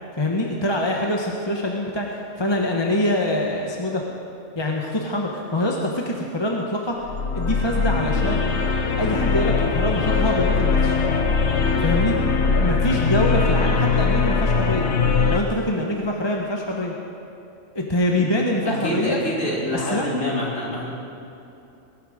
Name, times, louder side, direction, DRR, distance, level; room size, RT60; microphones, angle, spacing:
voice 1, 0.2-4.0 4.5-7.0 7.3-8.4 9.0-10.9 11.8-12.2 12.5-14.9 15.3-16.9 17.7-19.2 19.9-20.1, left 1 dB, 20° left, -1 dB, 1.2 m, -24 dB
sound 1, 7.0-15.4, left 4 dB, 65° left, 1.2 m, -21 dB
voice 2, 18.6-20.9, left 1 dB, 80° left, -6 dB, 4.0 m, -26 dB
21.0 x 11.0 x 5.1 m, 2.8 s
omnidirectional pair, 1.3 m